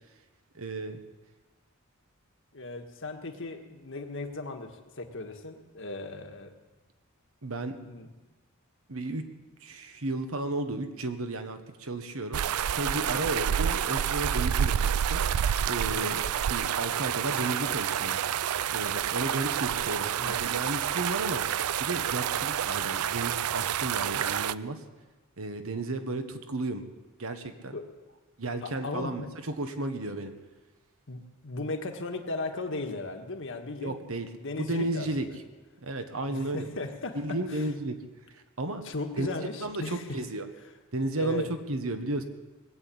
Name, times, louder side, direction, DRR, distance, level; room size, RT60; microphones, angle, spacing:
voice 1, 0.5-1.0 7.4-7.8 8.9-9.2 9.6-15.2 15.6-16.2 16.5-18.2 18.7-21.4 21.8-24.8 25.4-26.8 27.2-27.7 28.4-30.3 33.8-34.3 34.6-35.2 35.8-36.7 37.2-38.0 38.3-38.8 39.2-39.3 39.6-40.5 40.9-42.2, right 2 dB, 70° right, 7 dB, 1.4 m, -33 dB
voice 2, 2.5-6.6 7.8-8.1 13.1-13.3 15.9-16.2 20.2-20.4 27.7-27.8 28.6-29.3 31.1-35.4 36.3-37.7 38.8-40.2 41.2-41.5, left 2 dB, 60° left, 4 dB, 1.6 m, -37 dB
sound 1, 12.3-24.5, right 9 dB, 90° right, 0.4 m, -29 dB
20.0 x 8.2 x 8.7 m, 1.2 s
head